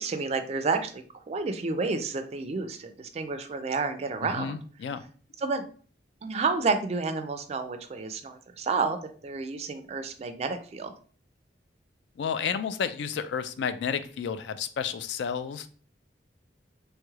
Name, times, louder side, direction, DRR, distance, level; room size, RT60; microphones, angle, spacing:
voice 1, 0.0-4.6 5.4-5.6 6.2-10.9, right 4 dB, 35° right, 8 dB, 0.3 m, -30 dB
voice 2, 4.2-5.0 12.2-15.7, left 7 dB, 70° left, 11 dB, 0.3 m, -31 dB
3.1 x 3.0 x 2.3 m, 0.43 s
head